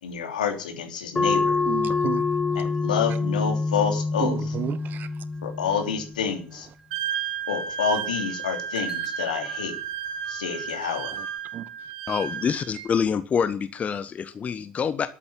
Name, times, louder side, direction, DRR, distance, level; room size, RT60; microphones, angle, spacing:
voice 1, 0.0-1.6 2.5-4.4 5.4-6.7 7.5-9.7 10.3-11.1, left 7 dB, 75° left, 3.2 m, -28 dB
sound 1, 1.2-6.3, left 4 dB, 20° left, 0.8 m, -26 dB
voice 2, 1.6-2.6 4.2-5.2 11.1-11.3 11.5-11.9, right 10 dB, 45° right, 1.3 m, -33 dB
sound 2, 4.8-11.4, right 7 dB, 15° right, 4.7 m, -42 dB
Wind instrument woodwind instrument, 6.9-12.9, right 8 dB, 70° right, 1.4 m, -33 dB
voice 3, 12.1-15.1, left 6 dB, 35° left, 1.1 m, -26 dB
12.5 x 8.6 x 7.5 m
figure-of-eight pair, 65°, 4 cm